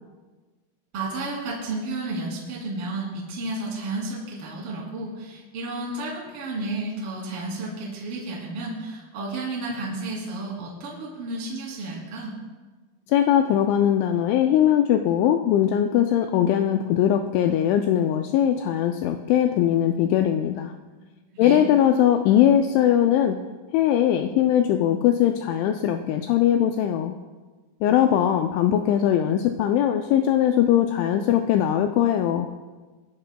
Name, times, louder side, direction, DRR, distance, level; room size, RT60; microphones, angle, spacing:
voice 1, 0.9-12.4 21.0-21.6, right 2 dB, 35° right, -4 dB, 2.8 m, -32 dB
voice 2, 13.1-20.7 21.4-23.4 23.7-27.2 27.8-32.5, left 10 dB, 90° left, 5 dB, 2.6 m, -20 dB
22.0 x 11.0 x 2.2 m, 1.3 s
omnidirectional pair, 5.9 m